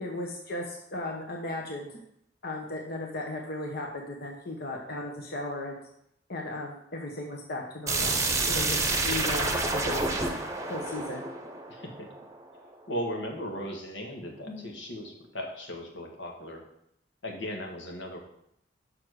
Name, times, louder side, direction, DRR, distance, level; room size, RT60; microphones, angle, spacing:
voice 1, 0.0-2.0 2.4-5.8 6.3-8.2 8.5-10.1 10.7-11.2 14.5-14.8, left 2 dB, 55° left, 0 dB, 1.0 m, -36 dB
sound 1, 7.9-12.6, right 3 dB, 15° right, 0.9 m, -29 dB
voice 2, 11.7-12.1 12.9-16.6 17.2-18.2, equal, 85° left, 1 dB, 1.6 m, -37 dB
7.0 x 6.1 x 4.8 m, 0.73 s
head